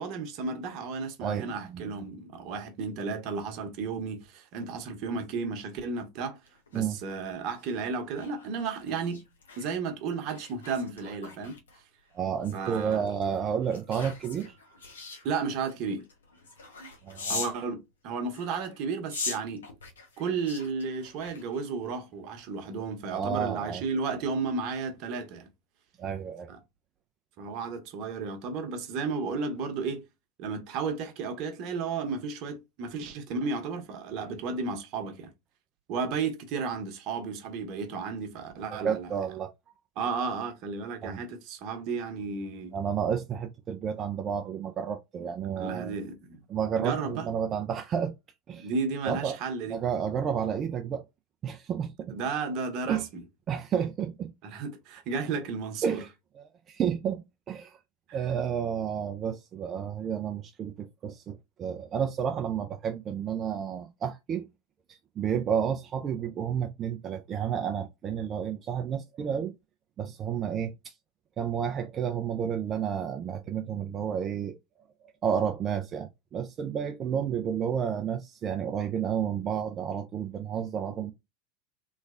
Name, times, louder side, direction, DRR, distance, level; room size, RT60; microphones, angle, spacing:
voice 1, 0.0-6.4 6.7-9.2 9.6-11.6 12.5-13.1 15.2-16.0 17.3-19.7 20.2-25.5 26.5-26.6 27.4-30.0 30.4-35.3 35.9-39.1 40.0-42.8 45.6-46.4 46.8-47.3 48.6-49.8 52.1-53.2 54.4-56.0 58.1-58.2, right 4 dB, 50° right, 1.0 m, -33 dB
voice 2, 1.2-2.0 6.7-7.0 12.1-15.1 17.0-17.5 23.1-23.8 26.0-26.5 38.7-39.5 41.0-41.2 42.7-46.0 46.5-48.1 48.5-48.7 49.1-49.4 49.7-51.0 51.4-52.2 52.9-53.1 53.5-54.3 55.8-56.1 56.4-57.8 58.1-64.5 65.2-69.5 70.0-70.9 71.4-74.6 75.2-81.1, right 8 dB, 35° right, 0.4 m, -31 dB
sound 1, 6.5-17.6 18.3-21.9 22.3-22.5, left 4 dB, 80° left, 1.0 m, -42 dB
3.2 x 3.1 x 2.5 m
figure-of-eight pair, 85°, 0 cm